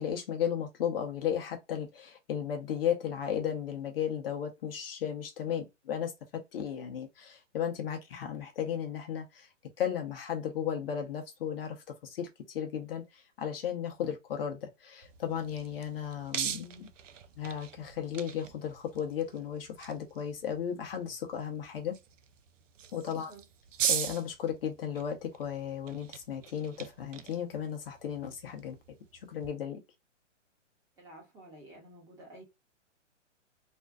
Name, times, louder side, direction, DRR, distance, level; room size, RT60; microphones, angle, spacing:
voice 1, 0.0-6.1 6.5-9.5 9.8-11.8 12.0-16.9 17.4-22.0 22.9-23.3 23.9-28.7 29.3-29.8, left 8 dB, 50° left, 0.7 m, -35 dB
sound 1, 15.0-29.5, right 9 dB, 85° right, 0.5 m, -41 dB
voice 2, 23.1-23.4 31.0-32.4, right 1 dB, 10° right, 0.9 m, -52 dB
2.5 x 2.3 x 2.2 m
hypercardioid pair, 135°, 37 cm